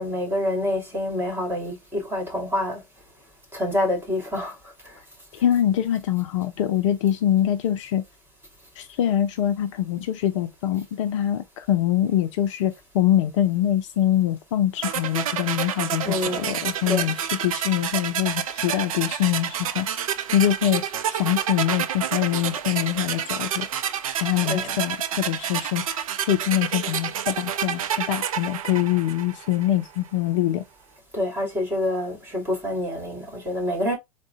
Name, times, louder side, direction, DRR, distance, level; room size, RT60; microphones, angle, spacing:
voice 1, 0.0-2.8 3.5-4.6 4.8-5.0 16.0-16.5 16.9-17.1 24.4-24.8 31.1-34.0, left 1 dB, 10° right, 2.1 m, -27 dB
voice 2, 5.3-8.0 8.8-19.9 20.3-20.8 21.1-23.7 24.2-25.8 26.3-30.7, left 12 dB, 55° left, 0.5 m, -24 dB
sound 1, 14.8-29.7, right 9 dB, 65° right, 0.5 m, -29 dB
3.7 x 2.2 x 3.5 m
figure-of-eight pair, 95°, 19 cm